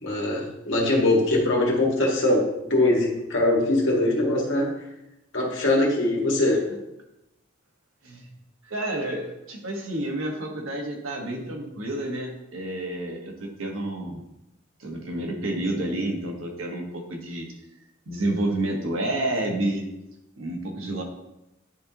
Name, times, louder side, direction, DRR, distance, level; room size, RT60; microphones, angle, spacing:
voice 1, 0.0-4.7 5.3-6.6, left 2 dB, 65° left, -2 dB, 1.8 m, -22 dB
voice 2, 8.7-14.2 14.8-17.5 18.1-19.8 20.4-21.0, right 1 dB, 85° right, 0 dB, 1.3 m, -29 dB
9.9 x 3.9 x 2.9 m, 0.90 s
head